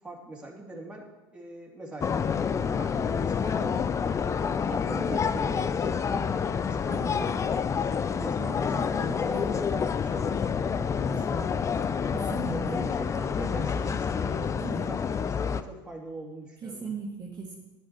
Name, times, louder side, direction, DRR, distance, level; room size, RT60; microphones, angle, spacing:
voice 1, 0.0-3.9 4.3-7.3 7.7-11.5 12.5-16.9, right 2 dB, 10° right, -2 dB, 3.1 m, -41 dB
sound 1, 2.0-15.6, left 6 dB, 25° left, 0.6 m, -28 dB
voice 2, 8.5-8.9 9.3-9.5 11.1-11.5 12.1-12.8 14.6-14.9 16.6-17.6, right 4 dB, 35° right, -2 dB, 2.2 m, -38 dB
11.5 x 9.8 x 4.8 m, 1.1 s
hypercardioid pair, 85°, 12 cm